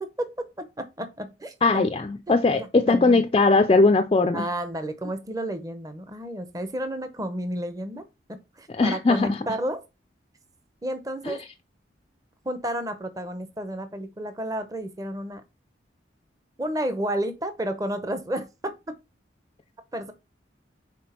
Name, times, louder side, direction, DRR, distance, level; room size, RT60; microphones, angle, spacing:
voice 1, 0.0-1.9 2.3-3.2 4.3-9.8 10.8-11.4 12.4-15.4 16.6-19.0 19.9-20.1, right 1 dB, 20° right, 0.7 m, -31 dB
voice 2, 1.6-4.5 8.7-9.4 11.3-11.4, left 3 dB, 30° left, 0.3 m, -20 dB
6.0 x 4.1 x 4.3 m
head